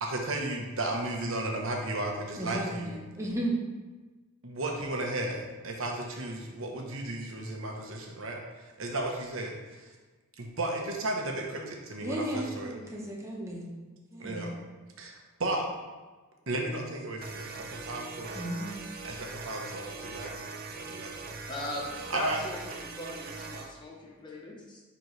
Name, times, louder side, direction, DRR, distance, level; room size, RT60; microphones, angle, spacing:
voice 1, 0.0-3.0 4.4-8.4 8.8-9.5 10.4-12.7 14.2-14.5 15.0-15.1 15.4-15.7 16.5-18.4 19.0-20.5 20.8-21.1 22.1-22.4, right 2 dB, 65° right, 1 dB, 1.0 m, -34 dB
voice 2, 2.4-3.6 12.0-13.7 14.1-14.5 18.3-18.8, right 1 dB, 15° right, -2 dB, 0.9 m, -34 dB
sound 1, 17.2-23.7, right 3 dB, 45° right, 0.5 m, -41 dB
voice 3, 21.5-24.8, left 1 dB, 20° left, -2 dB, 1.0 m, -39 dB
9.7 x 4.0 x 3.2 m, 1.3 s
head